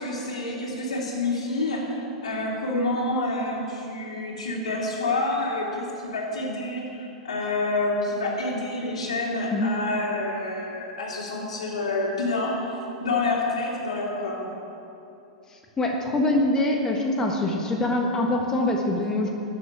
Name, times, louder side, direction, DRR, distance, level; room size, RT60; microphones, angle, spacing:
voice 1, 0.0-14.5, left 2 dB, 70° left, -3 dB, 3.2 m, -28 dB
voice 2, 15.5-19.3, left 2 dB, 15° left, 1 dB, 1.3 m, -24 dB
11.5 x 7.7 x 8.5 m, 2.8 s
figure-of-eight pair, 95°, 4 cm